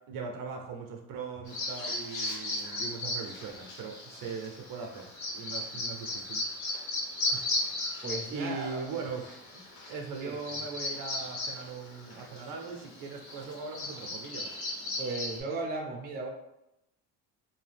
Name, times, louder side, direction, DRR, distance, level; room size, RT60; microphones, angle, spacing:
voice 1, 0.0-5.1 5.3-6.4 7.3-7.5 8.3-9.3 9.5-9.6 9.9-14.5, right 4 dB, 70° right, 3 dB, 0.6 m, -40 dB
Bird vocalization bird call bird song, 1.5-15.4, left 2 dB, 90° left, 1.1 m, -36 dB
voice 2, 8.0-9.0 10.2-10.4 15.0-16.3, right 3 dB, 30° right, 1 dB, 0.6 m, -36 dB
2.7 x 2.2 x 3.3 m, 0.85 s
cardioid pair, 105°, 34 cm